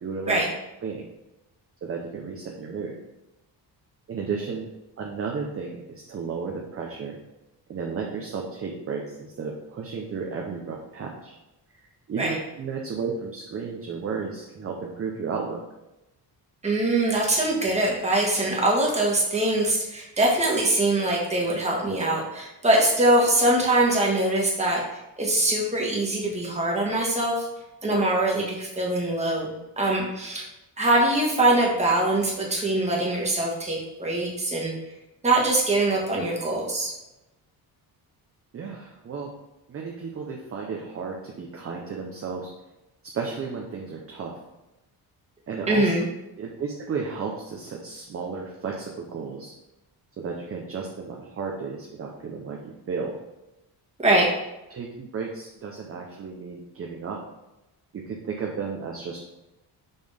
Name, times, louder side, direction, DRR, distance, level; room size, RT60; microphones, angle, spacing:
voice 1, 0.0-0.4 0.8-1.1 1.8-2.9 4.1-4.7 5.0-7.2 7.7-11.3 11.7-11.8 12.1-15.6 38.5-39.3 39.7-42.5 43.1-44.4 45.5-45.9 46.4-49.5 50.2-53.1 54.7-57.2 57.9-59.2, right 5 dB, 35° right, 0 dB, 0.7 m, -33 dB
voice 2, 16.6-24.8 25.2-27.5 27.8-30.4 30.8-34.7 35.2-36.9 45.7-46.0 54.0-54.3, right 1 dB, 15° right, -2 dB, 1.4 m, -23 dB
6.0 x 5.3 x 3.5 m, 0.95 s
cardioid pair, 180°, 41 cm